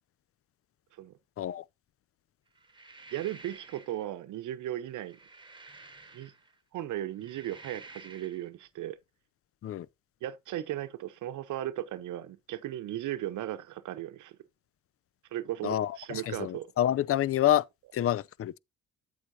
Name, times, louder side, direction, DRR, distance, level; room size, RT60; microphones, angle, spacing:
sound 1, 2.6-4.0 4.9-6.6 7.1-8.5, right 3 dB, 15° right, 1.5 m, -51 dB
voice 1, 3.1-5.2 6.1-6.3 6.7-9.0 10.2-14.4 15.3-16.7, right 13 dB, 80° right, 0.9 m, -36 dB
voice 2, 15.6-16.0 16.3-17.6 17.9-18.6, left 12 dB, 50° left, 0.5 m, -27 dB
8.5 x 8.3 x 2.7 m
cardioid pair, 90°, 30 cm